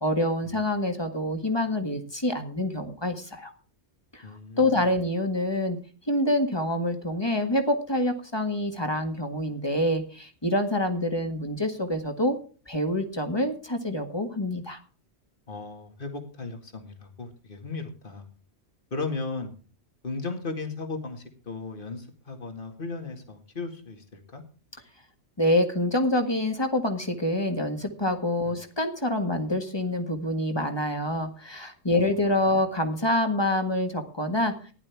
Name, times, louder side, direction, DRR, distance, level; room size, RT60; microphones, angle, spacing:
voice 1, 0.0-3.5 4.1-4.2 4.6-5.8 6.1-12.4 12.7-14.8 25.4-34.5, left 1 dB, 25° left, 6 dB, 1.7 m, -26 dB
voice 2, 4.2-4.9 15.5-18.3 18.9-19.5 20.0-24.4 28.4-28.6 32.5-32.6, left 3 dB, 50° left, 4 dB, 2.3 m, -36 dB
15.5 x 11.0 x 3.5 m, 0.38 s
omnidirectional pair, 1.1 m